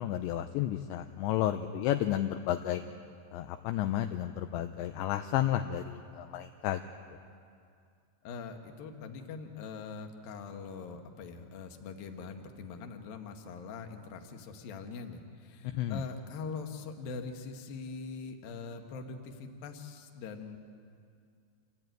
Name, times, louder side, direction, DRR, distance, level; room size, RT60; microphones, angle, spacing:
voice 1, 0.0-2.8 3.3-6.8 15.7-16.0, left 12 dB, 80° left, 7 dB, 2.7 m, -32 dB
voice 2, 8.2-20.6, left 4 dB, 60° left, 4 dB, 2.7 m, -42 dB
27.0 x 17.0 x 9.2 m, 2.3 s
omnidirectional pair, 5.8 m